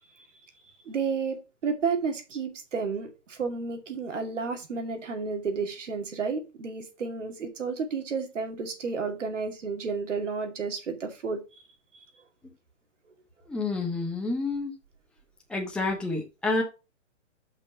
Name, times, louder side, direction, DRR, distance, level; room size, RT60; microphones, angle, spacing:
voice 1, 0.9-1.4 1.6-11.4 11.9-12.0, right 5 dB, 80° right, 2.5 m, -31 dB
voice 2, 13.5-14.7 15.5-16.6, left 3 dB, 5° left, 1.2 m, -29 dB
5.7 x 5.2 x 5.8 m
hypercardioid pair, 145°, 36 cm